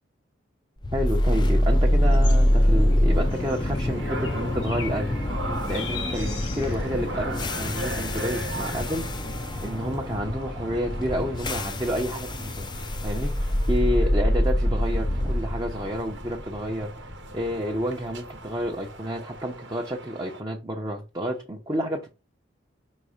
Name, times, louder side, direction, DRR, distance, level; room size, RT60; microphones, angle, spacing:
sound 1, 0.8-18.9, left 1 dB, 25° left, 0.5 m, -25 dB
voice 1, 0.9-5.1 5.7-9.0 9.6-12.7 13.0-22.1, equal, 20° right, 0.8 m, -30 dB
sound 2, 1.1-8.2, left 5 dB, 85° left, 1.6 m, -42 dB
sound 3, 3.1-20.4, right 2 dB, 65° right, 1.0 m, -40 dB
5.2 x 4.1 x 5.0 m
head